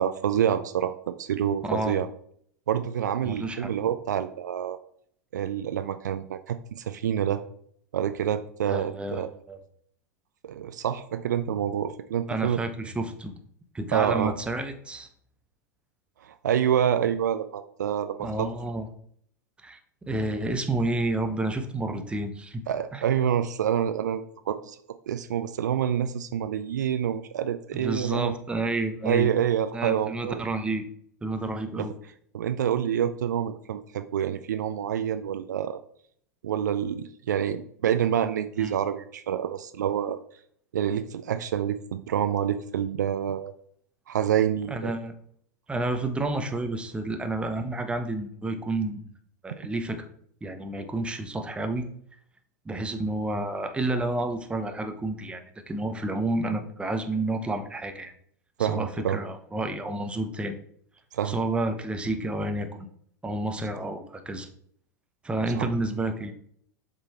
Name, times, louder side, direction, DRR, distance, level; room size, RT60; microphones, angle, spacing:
voice 1, 0.0-2.1 2.7-4.8 5.3-7.4 7.9-9.3 10.4-12.6 13.9-14.3 16.2-18.5 22.7-24.8 25.1-28.4 29.0-30.4 31.8-31.9 32.3-35.8 36.4-40.2 40.7-43.5 44.1-44.9 58.6-59.2 61.1-61.4 65.5-65.7, right 9 dB, 75° right, 10 dB, 0.4 m, -27 dB
voice 2, 1.6-2.0 3.2-3.7 8.7-9.6 12.3-13.3 13.7-15.1 18.2-18.9 19.6-19.8 20.1-22.6 22.9-23.0 27.7-29.3 29.7-30.8 31.2-31.9 38.6-38.7 44.7-45.1 45.7-49.0 49.4-50.1 50.4-51.9 52.6-58.1 58.6-60.6 61.2-62.9 63.2-64.5 65.2-66.3, right 2 dB, 10° right, 6 dB, 0.9 m, -30 dB
6.9 x 3.9 x 4.3 m, 0.66 s
figure-of-eight pair, 90°, 10 cm